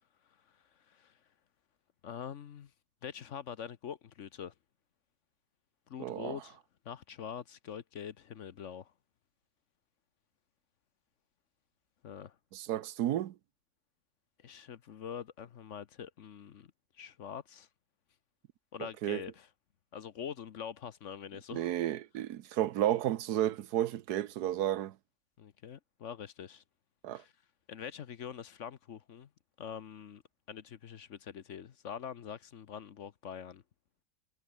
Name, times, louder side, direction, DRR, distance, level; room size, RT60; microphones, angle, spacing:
voice 1, 0.8-1.1 2.0-2.7 3.0-4.5 5.9-6.6 6.8-8.9 12.0-12.4 14.4-16.7 17.0-17.7 18.7-19.5 19.9-21.7 25.4-26.6 27.1-27.3 27.7-29.3 29.6-30.2 30.5-33.6, left 8 dB, 55° left, 1.1 m, -44 dB
voice 2, 6.0-6.4 12.5-13.3 19.0-19.2 21.5-24.9 27.0-27.2, right 12 dB, 85° right, 1.3 m, -32 dB
omnidirectional pair, 1.7 m